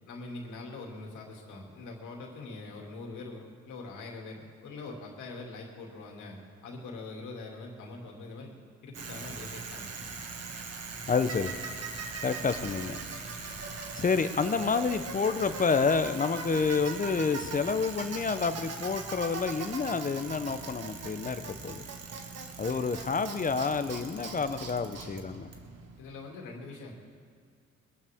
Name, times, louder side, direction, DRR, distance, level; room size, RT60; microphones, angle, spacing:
voice 1, 0.0-8.6 8.8-10.1 12.2-12.3 22.7-22.8 26.0-26.9, left 3 dB, 80° left, 0 dB, 2.6 m, -43 dB
Bicycle, 8.9-26.0, right 4 dB, 55° right, 1.7 m, -40 dB
voice 2, 11.1-11.5 12.2-13.0 13.9-21.8 22.6-25.5, left 5 dB, 25° left, 11 dB, 0.7 m, -29 dB
21.5 x 12.0 x 3.6 m, 2.2 s
cardioid pair, 90°, 30 cm